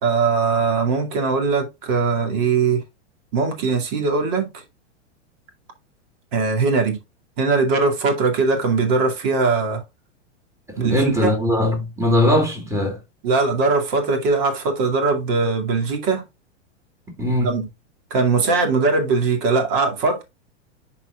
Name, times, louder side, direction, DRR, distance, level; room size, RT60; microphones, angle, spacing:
voice 1, 0.0-2.8 3.3-4.5 6.3-7.0 7.4-9.8 10.8-11.3 13.2-16.2 17.4-17.6 18.1-20.2, right 4 dB, 50° right, 2.4 m, -20 dB
voice 2, 10.7-13.0 17.2-17.6, left 1 dB, 10° right, 2.3 m, -20 dB
10.5 x 4.4 x 2.4 m
hypercardioid pair, 115°, 37 cm